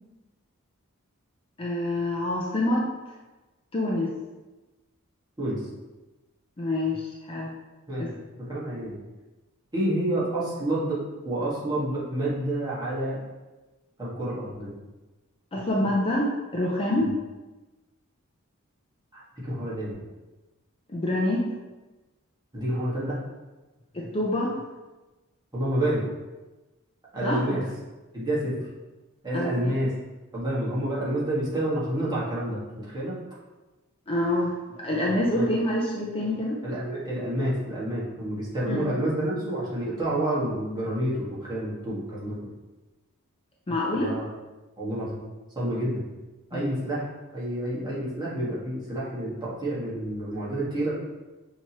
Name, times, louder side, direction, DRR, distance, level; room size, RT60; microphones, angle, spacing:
voice 1, 1.6-2.9 3.7-4.1 6.6-7.5 8.0-8.1 15.5-17.1 20.9-21.4 23.9-24.6 27.2-27.6 29.3-29.8 34.1-36.6 38.7-38.8 43.7-44.1 46.5-46.7, left 1 dB, 25° left, -3 dB, 0.5 m, -26 dB
voice 2, 8.5-9.0 9.7-11.0 11.2-13.2 14.0-14.7 17.0-17.1 19.1-19.9 22.5-23.2 25.5-26.0 27.1-27.6 28.1-28.6 29.2-29.9 30.3-33.2 35.3-35.5 36.6-42.3 43.9-44.2 44.8-45.2 45.5-46.0 46.5-50.9, right 1 dB, 20° right, -8 dB, 1.5 m, -29 dB
5.9 x 2.9 x 2.9 m, 1.1 s
head